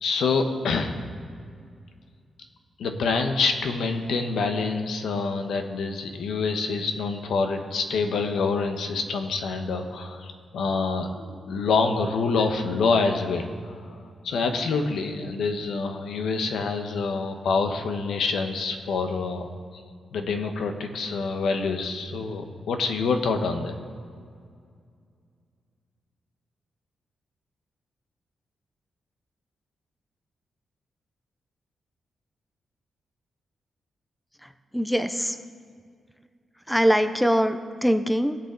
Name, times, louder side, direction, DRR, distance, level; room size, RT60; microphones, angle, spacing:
voice 1, 0.0-1.0 2.8-13.7 14.2-19.5 20.1-23.7, left 4 dB, 80° left, 6 dB, 1.1 m, -26 dB
voice 2, 34.4-35.4 36.7-38.4, equal, ahead, 9 dB, 0.5 m, -23 dB
20.0 x 7.0 x 3.9 m, 2.2 s
wide cardioid pair, 145°, 0 cm